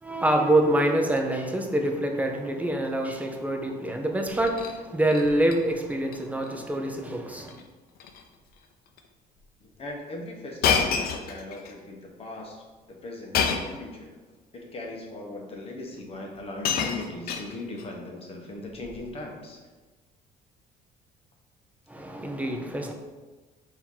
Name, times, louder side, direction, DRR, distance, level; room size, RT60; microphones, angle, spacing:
voice 1, 0.0-7.6 21.9-22.9, right 1 dB, 10° right, 3 dB, 0.5 m, -26 dB
Shatter, 4.3-4.8 5.1-5.6 5.9-6.2 6.4-6.5 7.4-7.6 8.0-8.2 9.0-9.1 10.6-11.7 13.3-13.8 14.8-14.9 16.0-16.1 16.3-17.9 18.8-19.1, left 6 dB, 65° left, 0.5 m, -28 dB
voice 2, 9.6-14.2 14.5-19.6, left 2 dB, 35° left, 0 dB, 0.9 m, -39 dB
4.5 x 2.8 x 3.7 m, 1.3 s
cardioid pair, 110°, 17 cm